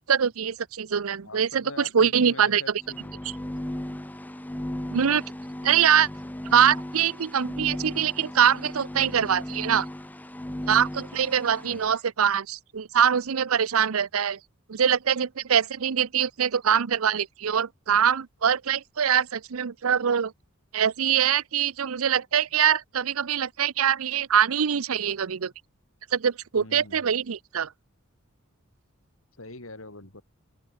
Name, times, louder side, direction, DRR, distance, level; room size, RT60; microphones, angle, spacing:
voice 1, 0.0-1.6 1.9-2.6 4.9-5.2 5.6-6.1 6.5-9.9 10.7-14.4 14.7-20.3 20.7-25.5 26.1-27.7, right 8 dB, 90° right, 0.6 m, -23 dB
voice 2, 1.2-3.2 11.6-11.9 26.6-27.0 29.4-30.2, left 2 dB, 75° left, 4.2 m, -43 dB
sound 1, 2.8-11.9, left 1 dB, 10° left, 0.6 m, -36 dB
open air
head